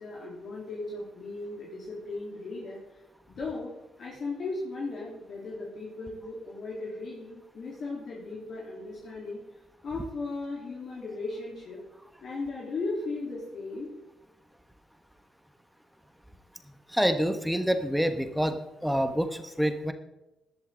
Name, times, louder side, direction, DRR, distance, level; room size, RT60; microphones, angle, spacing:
voice 1, 0.0-3.0 3.3-3.7 4.0-9.4 9.8-11.8 12.2-13.9, left 3 dB, 55° left, -4 dB, 3.6 m, -37 dB
voice 2, 16.9-18.6 18.8-19.9, equal, ahead, 8 dB, 1.2 m, -27 dB
14.5 x 11.5 x 3.9 m, 0.97 s
cardioid pair, 90°, 0 cm